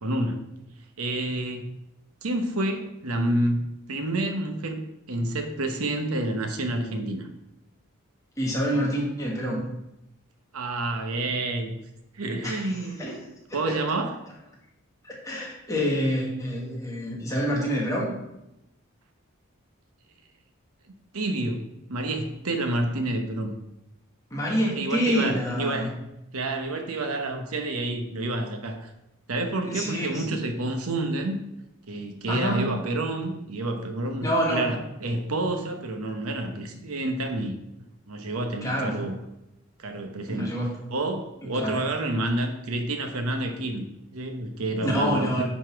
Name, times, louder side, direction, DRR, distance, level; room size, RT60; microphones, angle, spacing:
voice 1, 0.0-0.4 1.0-1.7 2.2-4.8 5.1-7.3 10.5-11.7 12.1-13.0 13.5-14.1 21.1-23.5 24.7-26.0 26.3-28.9 29.3-31.4 31.9-37.5 38.1-39.2 39.8-40.6 40.9-43.8 44.1-45.4, right 2 dB, 85° right, 5 dB, 1.0 m, -29 dB
voice 2, 8.4-9.6 12.4-13.2 13.5-13.8 15.0-18.1 24.3-25.9 29.7-30.4 32.3-32.8 34.2-34.7 38.6-39.0 40.3-40.8 41.5-41.8 44.8-45.4, equal, 15° left, -3 dB, 1.7 m, -27 dB
9.8 x 4.1 x 4.6 m, 0.87 s
head